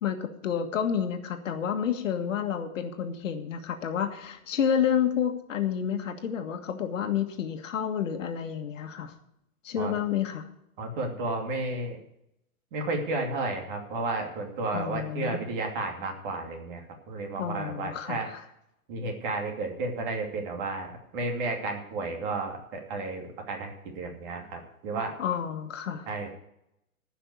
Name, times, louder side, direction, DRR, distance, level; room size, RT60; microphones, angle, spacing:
voice 1, 0.0-9.1 9.6-10.5 14.7-15.4 17.4-18.4 25.2-26.1, left 8 dB, 60° left, 6 dB, 1.8 m, -30 dB
voice 2, 10.8-12.0 12.7-18.3 18.9-25.1 26.1-26.3, right 2 dB, 35° right, 2 dB, 2.8 m, -32 dB
14.5 x 6.0 x 8.4 m, 0.80 s
hypercardioid pair, 160°, 44 cm